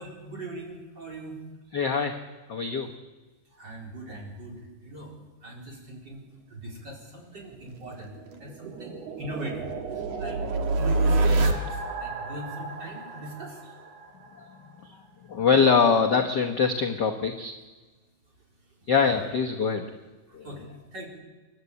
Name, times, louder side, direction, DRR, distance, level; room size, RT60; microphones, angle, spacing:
voice 1, 0.0-1.4 3.5-5.1 5.4-6.2 6.5-8.1 8.4-10.4 10.8-13.6 19.0-19.2 20.3-20.7 20.9-21.1, right 2 dB, 30° right, -1 dB, 4.7 m, -40 dB
voice 2, 1.7-2.2 2.5-2.9 14.8-15.0 15.3-17.5 18.9-19.9 20.3-20.5, left 5 dB, 55° left, 2 dB, 1.2 m, -23 dB
sound 1, 7.5-14.3, right 2 dB, 60° right, 2.7 m, -28 dB
29.5 x 12.5 x 8.4 m, 1.3 s
omnidirectional pair, 3.7 m